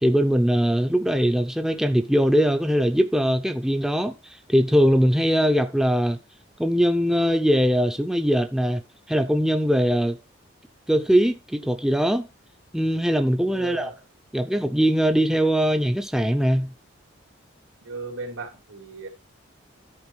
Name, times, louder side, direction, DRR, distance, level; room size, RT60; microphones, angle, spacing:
voice 1, 0.0-4.2 4.5-6.2 6.6-8.8 9.1-10.2 10.9-12.3 12.7-13.9 14.3-16.7, equal, 5° right, 0.6 m, -21 dB
voice 2, 13.4-14.0 17.8-19.1, right 3 dB, 90° right, 2.8 m, -36 dB
10.5 x 4.5 x 6.1 m
head